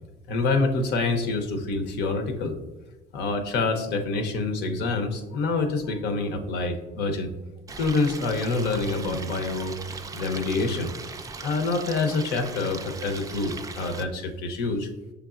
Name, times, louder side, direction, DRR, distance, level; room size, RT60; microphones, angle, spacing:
voice 1, 0.3-2.6 3.1-7.3 7.8-9.7 10.1-10.9 11.4-14.9, left 3 dB, 85° left, 5 dB, 0.7 m, -26 dB
Stream, 7.7-14.0, right 4 dB, 20° right, 0.3 m, -39 dB
5.8 x 3.4 x 2.4 m, 1.1 s
cardioid pair, 110°, 17 cm